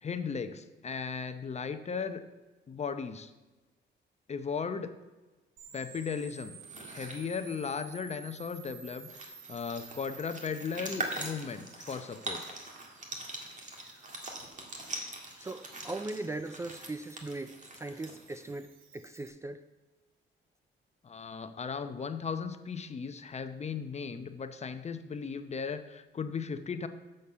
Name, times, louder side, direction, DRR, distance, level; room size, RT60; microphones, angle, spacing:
voice 1, 0.0-2.2 2.7-3.3 4.3-4.9 5.7-6.6 6.9-12.4 21.0-26.9, left 5 dB, 35° left, 0.7 m, -36 dB
sound 1, 5.6-19.3, right 6 dB, 85° right, 1.3 m, -54 dB
sound 2, 6.5-7.2 8.6-8.7 9.0-18.5, right 2 dB, 40° right, 1.9 m, -42 dB
voice 2, 15.4-19.6, right 2 dB, 15° right, 0.3 m, -39 dB
7.0 x 6.6 x 6.7 m
cardioid pair, 90°, 20 cm